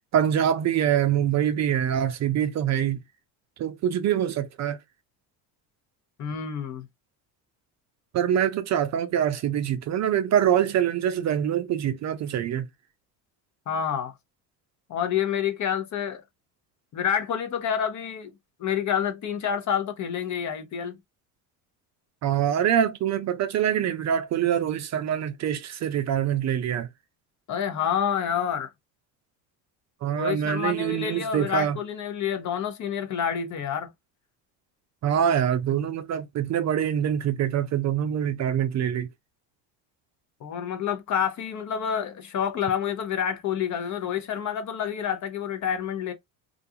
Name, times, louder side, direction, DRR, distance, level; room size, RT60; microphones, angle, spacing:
voice 1, 0.1-3.0 3.6-4.8 8.1-12.7 22.2-26.9 30.0-31.8 35.0-39.1, right 9 dB, 40° right, 0.4 m, -24 dB
voice 2, 6.2-6.9 13.7-14.1 14.9-16.2 16.9-18.3 18.6-21.0 27.5-28.7 30.1-33.9 40.4-46.1, left 8 dB, 45° left, 0.7 m, -28 dB
2.5 x 2.2 x 2.7 m
supercardioid pair, 85°, 42 cm